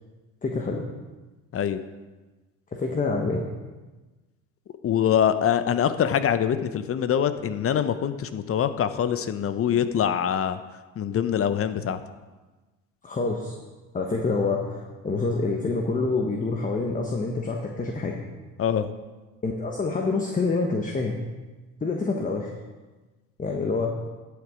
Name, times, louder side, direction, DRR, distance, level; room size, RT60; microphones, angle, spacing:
voice 1, 0.4-0.8 2.7-3.4 13.0-13.5 13.9-18.2 19.4-21.2 21.8-22.5 23.4-23.9, left 3 dB, 20° left, 2 dB, 1.2 m, -27 dB
voice 2, 4.8-10.6 11.0-12.0 18.6-18.9, left 9 dB, 35° left, 11 dB, 0.8 m, -24 dB
11.5 x 6.9 x 5.0 m, 1.2 s
supercardioid pair, 90°, 37 cm